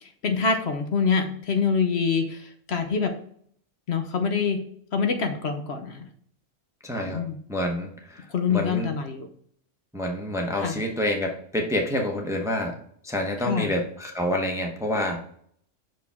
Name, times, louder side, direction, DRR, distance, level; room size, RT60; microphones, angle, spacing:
voice 1, 0.0-3.1 3.9-4.6 4.9-6.1 7.1-7.4 8.3-9.3 10.6-10.8 13.4-13.7, left 5 dB, 65° left, 6 dB, 1.0 m, -25 dB
voice 2, 6.8-7.2 7.5-8.2 8.5-8.9 9.9-12.8 13.0-15.2, left 1 dB, 5° right, 1 dB, 0.8 m, -27 dB
6.1 x 4.8 x 3.5 m, 0.63 s
omnidirectional pair, 1.2 m